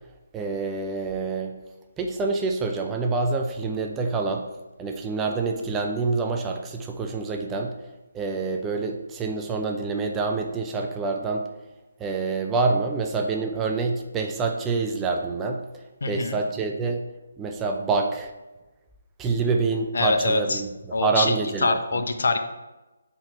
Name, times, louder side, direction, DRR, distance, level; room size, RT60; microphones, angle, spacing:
voice 1, 0.3-1.6 2.0-4.5 4.8-7.8 8.1-11.5 12.0-15.6 16.1-17.1 17.4-18.3 19.2-22.0, right 4 dB, 10° right, 3 dB, 0.4 m, -26 dB
voice 2, 16.0-16.4 19.9-20.6 20.9-22.4, left 3 dB, 55° left, 6 dB, 0.6 m, -24 dB
5.7 x 4.2 x 4.3 m, 1.1 s
figure-of-eight pair, 145°, 0 cm